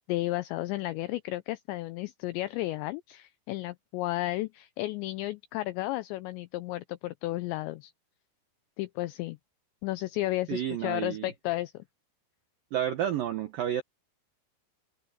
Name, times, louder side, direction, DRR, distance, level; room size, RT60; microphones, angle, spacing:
voice 1, 0.1-7.9 8.8-9.4 9.8-11.8, left 17 dB, 85° left, 2.5 m, -33 dB
voice 2, 10.5-11.3 12.7-13.8, right 10 dB, 80° right, 2.0 m, -30 dB
omnidirectional pair, 5.8 m